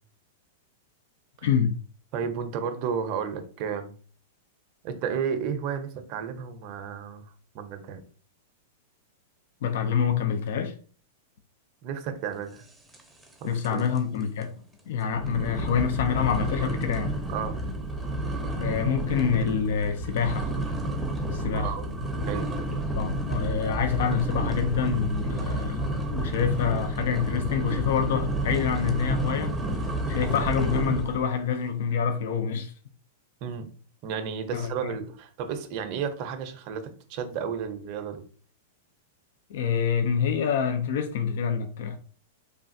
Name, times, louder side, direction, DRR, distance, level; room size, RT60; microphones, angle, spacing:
voice 1, 1.4-1.8 9.6-10.8 13.4-14.5 14.9-17.2 18.6-20.5 21.3-21.7 22.9-29.5 30.1-32.7 34.5-35.0 39.5-42.0, left 7 dB, 70° left, 0.4 m, -26 dB
voice 2, 2.1-3.9 4.8-7.2 7.5-8.0 11.8-12.6 13.4-13.8 17.3-17.6 21.5-21.9 22.3-22.5 33.4-33.7 34.0-38.2, right 7 dB, 50° right, 0.6 m, -32 dB
sound 1, 12.9-13.3 13.6-14.0 14.4-14.5 15.1-31.3, right 1 dB, 5° right, 0.6 m, -30 dB
3.2 x 2.3 x 2.6 m
hypercardioid pair, 120°, 0 cm